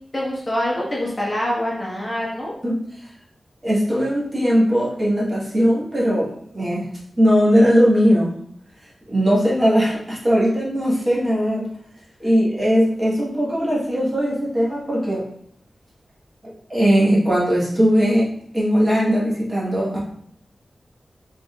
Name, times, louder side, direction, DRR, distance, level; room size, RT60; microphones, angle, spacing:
voice 1, 0.1-2.5, left 1 dB, 20° left, -5 dB, 1.2 m, -25 dB
voice 2, 3.6-6.9 7.2-8.3 9.1-11.7 12.2-15.2 16.7-20.0, equal, 25° right, -6 dB, 1.4 m, -19 dB
5.0 x 3.7 x 2.4 m, 0.67 s
wide cardioid pair, 115°, 0 cm